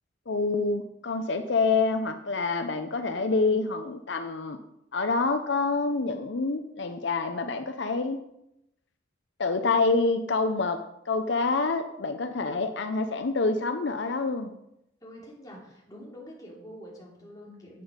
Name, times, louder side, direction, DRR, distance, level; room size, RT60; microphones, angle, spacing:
voice 1, 0.3-4.6 4.9-8.2 9.4-10.8 11.1-14.5, left 3 dB, 70° left, 8 dB, 0.7 m, -27 dB
voice 2, 15.0-17.8, equal, 20° left, -4 dB, 3.1 m, -46 dB
10.5 x 8.1 x 5.2 m, 0.83 s
head